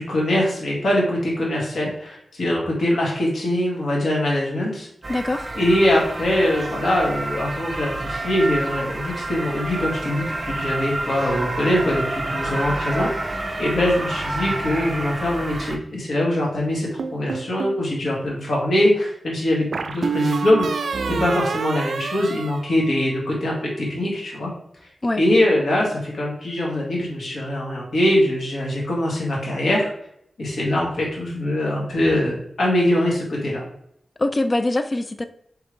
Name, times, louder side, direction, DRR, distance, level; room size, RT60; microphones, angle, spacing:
voice 1, 0.0-4.9 5.6-13.3 13.6-20.8 21.2-24.5 25.2-29.9 30.4-33.6, left 1 dB, 80° left, -3 dB, 1.7 m, -22 dB
sound 1, 5.0-15.8, right 2 dB, 40° right, 0.6 m, -29 dB
voice 2, 5.1-5.5 25.0-25.2 34.2-35.3, left 2 dB, 35° left, 10 dB, 0.4 m, -23 dB
sound 2, 17.0-17.8 19.7-23.3, right 5 dB, 85° right, 0.4 m, -27 dB
4.9 x 3.4 x 3.1 m, 0.72 s
wide cardioid pair, 85°, 0 cm